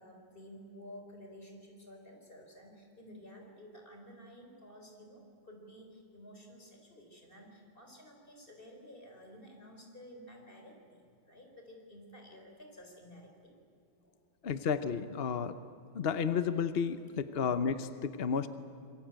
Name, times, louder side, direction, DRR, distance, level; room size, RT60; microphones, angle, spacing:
voice 1, 0.0-13.5 14.0-14.2, equal, 25° left, 2 dB, 4.5 m, -53 dB
voice 2, 14.4-15.5 15.9-18.5, left 6 dB, 55° left, 11 dB, 0.6 m, -32 dB
26.0 x 22.0 x 8.9 m, 2.5 s
omnidirectional pair, 2.1 m